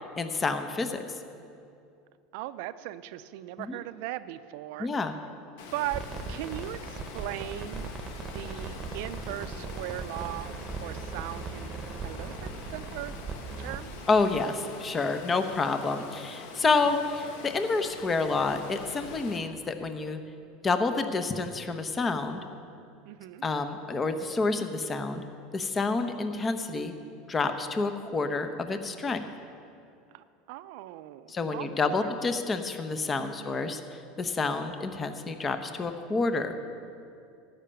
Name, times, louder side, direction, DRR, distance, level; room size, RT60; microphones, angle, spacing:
voice 1, 0.2-1.0 3.7-3.8 4.8-5.1 14.1-20.2 20.6-22.4 23.4-25.2 25.5-26.9 27.3-29.2 31.3-33.8 34.2-36.5, left 3 dB, 25° left, 8 dB, 0.9 m, -28 dB
voice 2, 2.3-4.9 5.7-11.7 12.0-13.1 13.6-13.9 23.0-23.4 30.1-32.1 33.2-33.8, right 14 dB, 70° right, 13 dB, 0.5 m, -39 dB
Water, 5.6-19.4, left 4 dB, 75° left, 1.3 m, -45 dB
sound 1, 5.8-14.4, right 4 dB, 30° right, 1.0 m, -39 dB
13.0 x 5.7 x 8.5 m, 2.5 s
supercardioid pair, 105°, 0 cm